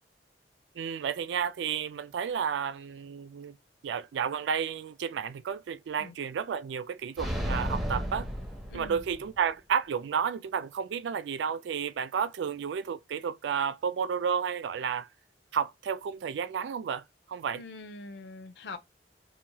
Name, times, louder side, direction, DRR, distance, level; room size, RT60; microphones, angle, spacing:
voice 1, 0.8-3.6 3.8-8.3 8.7-15.1 15.5-17.0 17.3-17.6, right 7 dB, 90° right, 0.3 m, -32 dB
sound 1, 7.2-9.4, equal, ahead, 0.9 m, -33 dB
voice 2, 8.7-9.0 17.5-18.8, left 3 dB, 70° left, 0.5 m, -43 dB
2.8 x 2.7 x 2.2 m
head